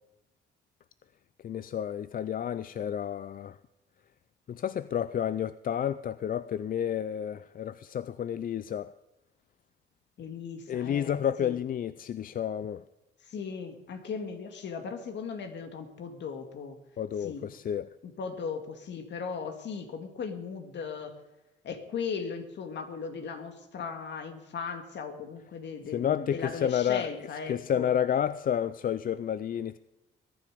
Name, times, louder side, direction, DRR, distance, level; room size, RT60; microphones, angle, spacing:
voice 1, 1.4-3.6 4.5-8.9 10.7-12.8 17.0-17.9 25.9-27.1 27.5-29.8, left 9 dB, 45° left, 0.4 m, -30 dB
voice 2, 10.2-11.6 13.3-16.8 17.2-17.4 18.0-21.2 21.6-27.9, left 5 dB, 65° left, 2.1 m, -37 dB
21.5 x 10.5 x 5.1 m
cardioid pair, 90°, 20 cm